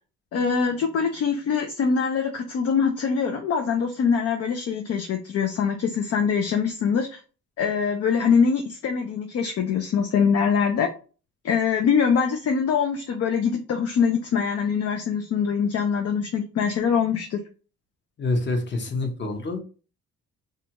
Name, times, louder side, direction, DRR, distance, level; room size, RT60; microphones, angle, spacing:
voice 1, 0.3-7.2 7.6-10.9 11.4-17.4, left 6 dB, 55° left, 4 dB, 0.5 m, -23 dB
voice 2, 18.2-19.6, left 2 dB, 35° left, 3 dB, 0.8 m, -26 dB
2.5 x 2.2 x 2.8 m, 0.36 s
cardioid pair, 90°, 30 cm